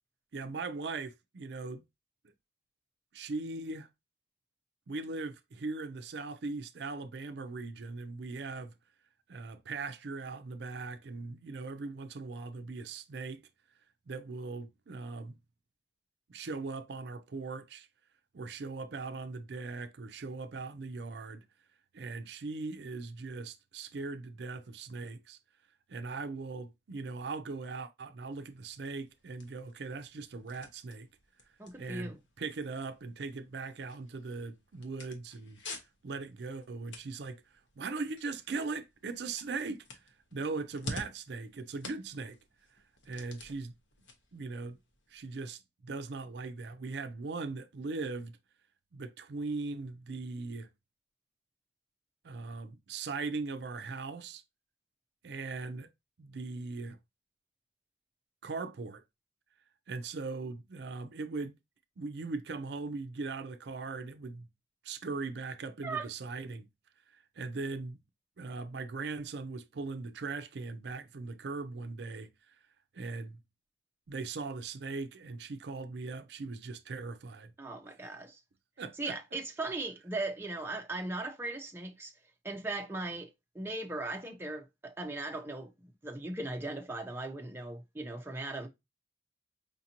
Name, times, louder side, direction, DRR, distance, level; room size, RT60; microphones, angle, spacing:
voice 1, 0.3-1.8 3.1-3.9 4.9-8.7 9.3-13.4 14.1-15.4 16.3-17.9 18.3-21.4 21.9-25.4 25.9-31.1 31.8-35.6 36.0-37.4 37.8-42.4 43.1-43.7 44.3-44.8 45.1-48.3 48.9-50.7 52.2-54.4 55.2-55.9 56.2-57.0 58.4-59.0 59.9-61.5 62.0-64.5 64.8-66.7 67.1-68.0 68.4-72.6 72.9-73.4 74.1-77.5 78.8-79.2, right 3 dB, 65° right, 0.4 m, -39 dB
sound 1, 28.5-45.5, left 2 dB, 85° left, 1.0 m, -50 dB
voice 2, 31.6-32.2 65.8-66.1 77.6-78.4 79.0-82.1 82.4-83.3 83.5-85.7 86.0-88.7, right 2 dB, 15° right, 0.6 m, -38 dB
5.1 x 2.6 x 2.8 m
head